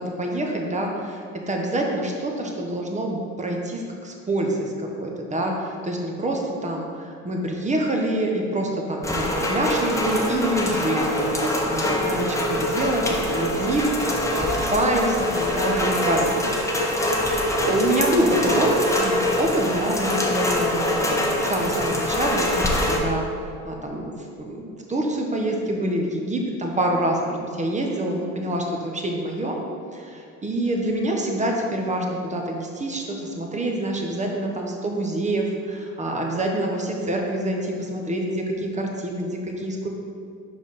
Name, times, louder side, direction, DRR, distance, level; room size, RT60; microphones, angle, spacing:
voice 1, 0.0-17.1 17.5-29.6 29.9-39.9, right 1 dB, 20° right, 1 dB, 0.9 m, -26 dB
Rain, 9.0-23.0, left 1 dB, 10° left, 0.8 m, -24 dB
5.0 x 4.9 x 4.1 m, 2.4 s
supercardioid pair, 90°, 32 cm